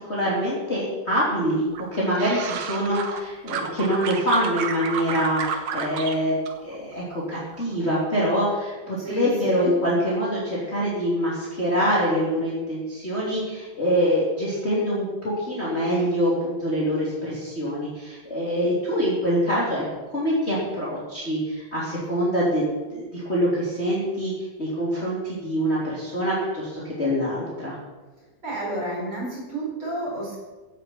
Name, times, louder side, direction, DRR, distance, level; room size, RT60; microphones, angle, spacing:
voice 1, 0.1-19.8 20.1-22.6 22.9-24.3 24.6-27.8, equal, 20° left, -7 dB, 3.2 m, -25 dB
sound 1, 1.7-3.2 3.5-6.2 6.5-7.2 7.5-8.0, right 6 dB, 75° right, 2.7 m, -31 dB
voice 2, 9.0-9.7 28.4-30.4, right 2 dB, 35° right, -4 dB, 5.6 m, -30 dB
16.0 x 9.9 x 4.6 m, 1.2 s
omnidirectional pair, 3.8 m